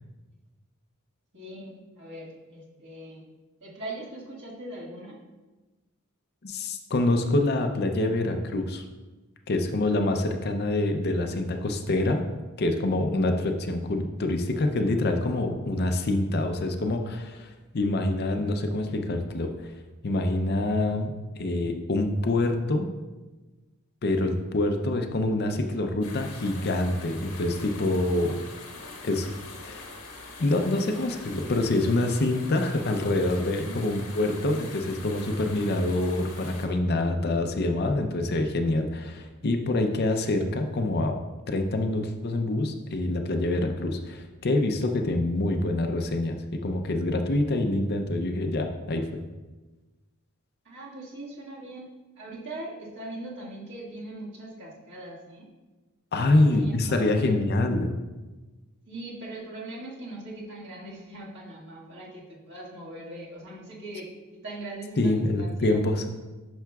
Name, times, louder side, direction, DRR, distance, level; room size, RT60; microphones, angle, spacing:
voice 1, 1.3-3.3 3.6-5.2 33.7-33.8 50.7-51.9 52.2-55.5 56.2-57.5 58.9-65.8, right 1 dB, 55° right, -5 dB, 1.7 m, -40 dB
voice 2, 6.4-8.8 9.5-12.2 12.6-19.7 20.0-22.9 24.0-28.4 29.0-29.3 29.6-29.9 30.4-41.1 41.5-49.0 56.1-57.9 65.0-66.0, left 2 dB, 45° left, 5 dB, 0.5 m, -26 dB
sound 1, 26.0-36.7, left 3 dB, 85° left, 1.3 m, -43 dB
10.5 x 5.7 x 2.3 m, 1.2 s
head